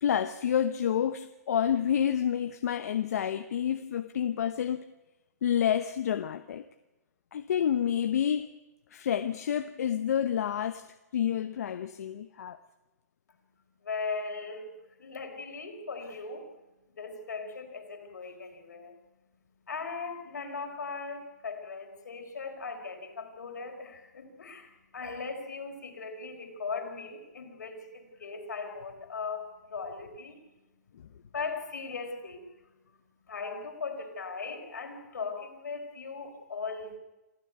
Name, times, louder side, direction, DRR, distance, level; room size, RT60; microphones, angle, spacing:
voice 1, 0.0-4.8 5.4-6.6 7.3-8.5 8.9-10.9 11.1-12.6, left 9 dB, 65° left, 11 dB, 1.0 m, -29 dB
voice 2, 13.8-16.5 17.0-18.9 19.7-30.4 31.3-32.5 33.3-37.0, left 4 dB, 85° left, 4 dB, 4.8 m, -38 dB
27.5 x 13.5 x 9.4 m, 1.1 s
hypercardioid pair, 145°, 9 cm